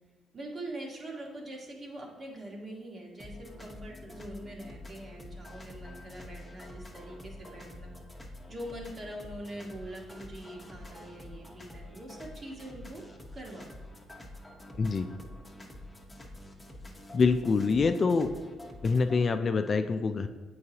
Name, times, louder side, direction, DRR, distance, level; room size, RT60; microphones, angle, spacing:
voice 1, 0.3-7.9 8.5-13.0 13.3-13.6, right 1 dB, 40° right, 0 dB, 1.4 m, -43 dB
sound 1, 3.2-19.2, left 1 dB, 15° left, 0.9 m, -47 dB
voice 2, 17.1-18.3 18.8-20.3, left 4 dB, 40° left, 8 dB, 0.4 m, -25 dB
8.1 x 4.7 x 2.8 m, 1.3 s
cardioid pair, 90°, 0 cm